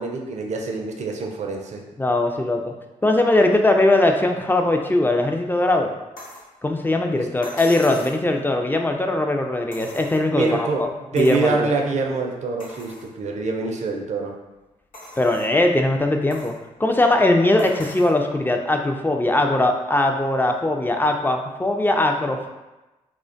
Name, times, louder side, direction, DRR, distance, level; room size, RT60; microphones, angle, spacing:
voice 1, 0.0-1.8 7.0-7.2 10.3-10.9 11.1-14.4, right 3 dB, 55° right, 2 dB, 0.4 m, -25 dB
voice 2, 2.0-2.6 3.0-5.9 6.6-10.7 11.1-11.7 15.2-16.5 16.8-22.5, left 2 dB, 15° left, 3 dB, 0.3 m, -20 dB
sound 1, 6.2-6.5 7.4-8.2 9.7-10.5 11.2-11.5 12.0-12.1 12.6-13.1 13.7-13.8 14.9-15.5 16.3-16.6 17.6-18.2 19.4-19.5, left 1 dB, 70° left, 0.8 m, -40 dB
2.4 x 2.2 x 2.5 m, 1.1 s
hypercardioid pair, 40°, 14 cm